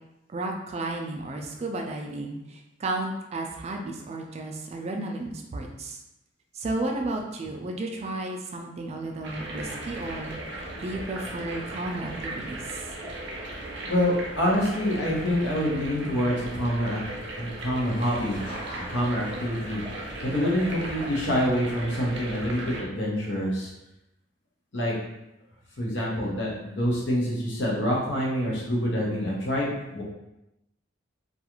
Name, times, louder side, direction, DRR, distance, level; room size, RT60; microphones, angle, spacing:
voice 1, 0.3-6.0 6.5-12.8, right 2 dB, 35° right, 1 dB, 0.3 m, -33 dB
sound 1, 9.2-22.8, right 1 dB, 75° right, 0.6 m, -37 dB
voice 2, 13.8-17.0 17.3-18.4 18.7-19.8 20.2-23.7 24.7-25.0 25.8-30.0, equal, 70° left, -4 dB, 0.9 m, -26 dB
Laughter, 17.9-21.9, equal, 25° left, 0.9 m, -44 dB
2.4 x 2.3 x 2.9 m, 0.91 s
head